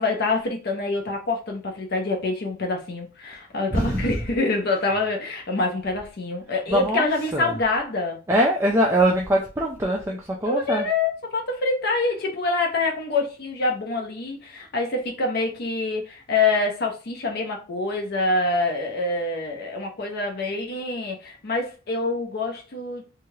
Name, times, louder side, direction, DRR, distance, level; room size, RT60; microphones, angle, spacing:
voice 1, 0.0-8.2 10.4-23.0, left 3 dB, 55° left, 0.6 m, -26 dB
voice 2, 3.7-4.1 6.7-7.0 7.3-7.5 8.3-10.9, right 1 dB, 15° right, 0.4 m, -22 dB
2.7 x 2.3 x 3.1 m
head